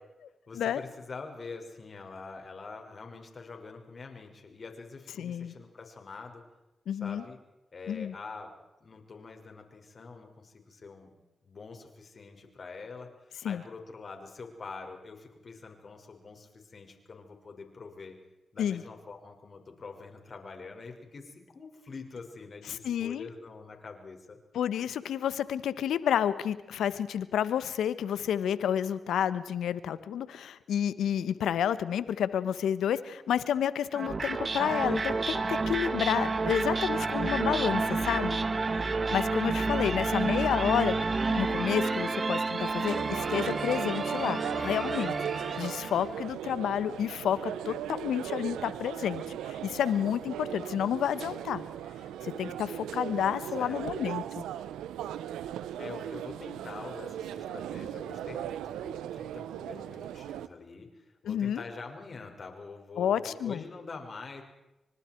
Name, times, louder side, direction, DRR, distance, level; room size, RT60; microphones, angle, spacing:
voice 1, 0.5-6.4 7.0-7.4 7.7-11.1 11.4-18.2 18.5-24.4 53.5-54.1 55.8-64.4, left 4 dB, 55° left, 4 dB, 6.2 m, -45 dB
voice 2, 5.2-5.5 6.9-7.2 7.9-8.1 13.4-13.6 18.6-18.8 22.7-23.3 24.5-38.4 38.7-40.9 41.2-51.6 52.2-54.4 61.2-61.6 63.0-63.6, left 9 dB, 80° left, 14 dB, 1.4 m, -30 dB
sound 1, 33.9-46.2, right 3 dB, 45° right, 2.3 m, -30 dB
sound 2, 42.6-60.5, right 11 dB, 85° right, 1.0 m, -38 dB
29.5 x 25.0 x 4.7 m, 1.0 s
supercardioid pair, 40°, 0 cm